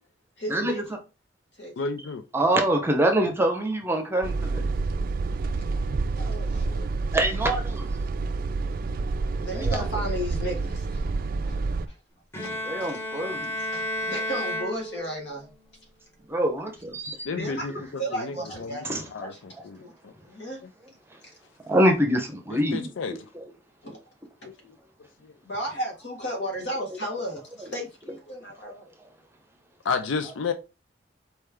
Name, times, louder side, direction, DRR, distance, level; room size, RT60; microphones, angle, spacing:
voice 1, 0.4-0.8 1.6-1.7 6.2-6.9 9.4-11.0 11.5-11.6 11.9-12.0 12.4-13.0 13.6-15.5 17.3-17.7 18.0-19.9 20.2-20.6 21.2-21.3 23.8-24.0 24.4-24.5 25.4-28.9, equal, 65° left, 1.7 m, -34 dB
voice 2, 1.8-2.2 17.2-19.3 19.6-20.1 22.5-23.2 24.4-24.5 29.8-30.5, left 5 dB, 90° left, 0.4 m, -32 dB
voice 3, 2.3-4.7 7.1-7.8 9.5-9.8 12.6-13.5 16.3-17.3 18.9-19.0 21.7-23.2, right 1 dB, 15° right, 0.8 m, -25 dB
sound 1, 4.2-11.9, right 3 dB, 50° right, 0.4 m, -28 dB
Bowed string instrument, 12.3-15.5, left 1 dB, 15° left, 1.3 m, -32 dB
4.4 x 3.2 x 3.5 m
head